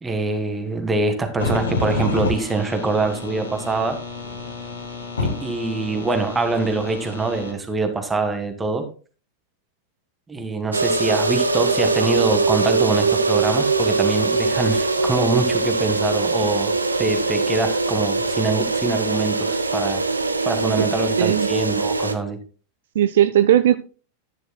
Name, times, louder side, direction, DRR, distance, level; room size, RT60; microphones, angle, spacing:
voice 1, 0.0-4.0 5.2-8.9 10.3-16.7 17.0-20.0 20.4-22.4, right 3 dB, 15° right, 1.6 m, -24 dB
sound 1, 1.4-7.5, left 3 dB, 70° left, 2.3 m, -29 dB
sound 2, 10.7-22.1, right 3 dB, 80° right, 0.9 m, -22 dB
voice 2, 21.2-21.5 22.9-23.8, right 11 dB, 60° right, 0.5 m, -17 dB
10.5 x 10.0 x 2.2 m
figure-of-eight pair, 90°, 0 cm